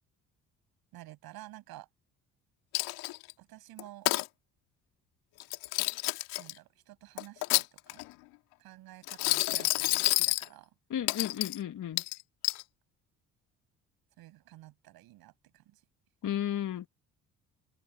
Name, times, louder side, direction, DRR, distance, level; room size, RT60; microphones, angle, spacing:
voice 1, 0.9-1.9 3.4-4.1 6.4-8.0 8.6-10.7 14.2-15.8, right 16 dB, 70° right, 7.3 m, -51 dB
Coin (dropping), 2.7-3.3 3.8-4.3 5.4-6.5 7.2-8.1 9.0-10.5 11.1-11.6 12.0-12.6, left 21 dB, 80° left, 2.3 m, -29 dB
voice 2, 10.9-12.0 16.2-16.9, left 10 dB, 55° left, 1.9 m, -33 dB
hypercardioid pair, 55°, 38 cm